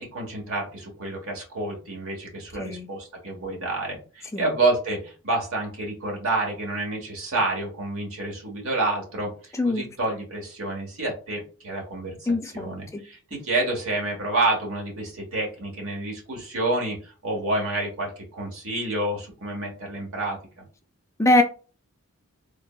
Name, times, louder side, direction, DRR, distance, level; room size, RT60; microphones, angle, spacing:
voice 1, 0.0-20.4, right 2 dB, 65° right, 0 dB, 1.2 m, -29 dB
voice 2, 12.3-13.0 21.2-21.4, left 2 dB, 15° left, 5 dB, 0.4 m, -22 dB
3.4 x 2.0 x 2.2 m, 0.36 s
head